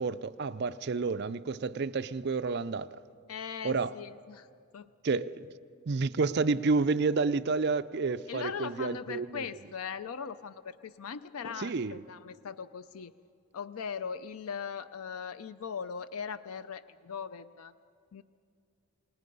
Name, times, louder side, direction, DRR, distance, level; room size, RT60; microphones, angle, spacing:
voice 1, 0.0-3.0 3.6-3.9 5.0-5.5 5.9-9.4 11.6-12.0, right 4 dB, 50° right, 0.5 m, -30 dB
voice 2, 3.3-4.5 4.7-4.9 8.3-13.1 13.5-17.7 18.1-18.2, left 6 dB, 75° left, 0.5 m, -39 dB
28.0 x 19.0 x 5.4 m
head